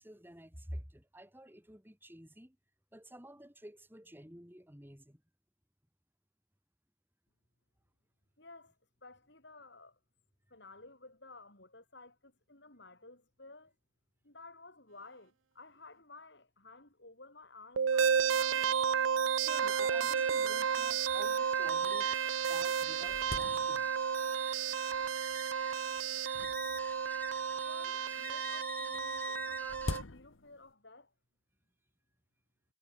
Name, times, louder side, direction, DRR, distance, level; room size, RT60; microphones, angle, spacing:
voice 1, 0.0-2.6 2.9-5.2 19.4-22.2 22.5-23.9, equal, 10° right, 4.1 m, -51 dB
voice 2, 8.4-10.0 10.5-13.7 14.2-18.7 27.6-31.1, left 3 dB, 60° left, 6.1 m, -54 dB
sound 1, 17.8-30.0, right 7 dB, 75° right, 0.5 m, -32 dB
sound 2, 19.5-30.0, left 2 dB, 10° left, 0.7 m, -47 dB
sound 3, 20.4-20.5 21.2-21.3 21.9-22.0 22.4-24.2 24.9-25.4 26.3-27.6 28.9-30.7, left 2 dB, 80° left, 1.3 m, -44 dB
head